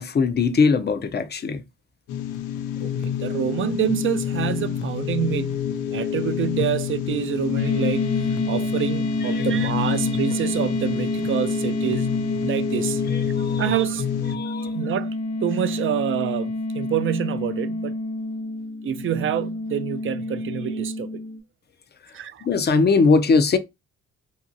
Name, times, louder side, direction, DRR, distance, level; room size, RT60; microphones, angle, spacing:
voice 1, 0.0-1.6 9.2-9.5 13.1-13.7 14.3-14.8 22.4-23.6, left 4 dB, 35° left, 0.5 m, -21 dB
sound 1, 2.1-14.4, left 10 dB, 85° left, 0.5 m, -28 dB
voice 2, 2.8-5.6 5.9-8.1 8.5-12.1 12.4-13.0 13.6-14.0 14.7-15.1 15.4-17.9 18.8-21.2 22.1-22.5, right 10 dB, 45° right, 0.4 m, -27 dB
sound 2, 7.6-21.4, left 1 dB, 60° left, 0.9 m, -28 dB
2.8 x 2.7 x 2.6 m
cardioid pair, 90°, 30 cm